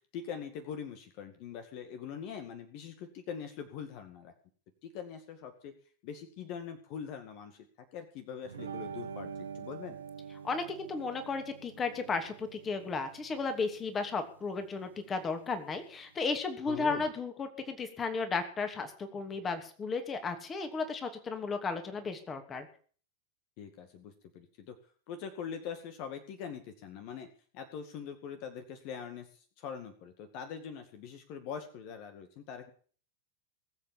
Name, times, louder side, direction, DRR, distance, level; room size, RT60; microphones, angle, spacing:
voice 1, 0.0-4.3 4.8-5.7 6.0-7.7 7.9-10.0 16.7-17.1 23.6-24.8 25.1-27.3 27.5-32.7, left 7 dB, 45° left, 7 dB, 2.1 m, -43 dB
sound 1, 8.4-16.2, right 6 dB, 70° right, 2.1 m, -46 dB
voice 2, 10.4-22.7, left 4 dB, 20° left, 8 dB, 2.8 m, -34 dB
20.5 x 8.2 x 7.0 m, 0.44 s
figure-of-eight pair, 90°, 0 cm